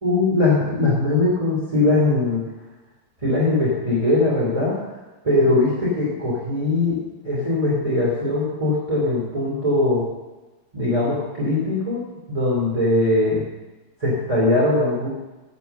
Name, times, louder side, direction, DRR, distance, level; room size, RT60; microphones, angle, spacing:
voice 1, 0.0-2.5 3.2-4.8 5.2-7.0 7.2-10.1 10.7-13.4 14.0-15.1, left 2 dB, 15° right, -6 dB, 2.8 m, -20 dB
12.0 x 7.2 x 7.0 m, 1.1 s
omnidirectional pair, 2.3 m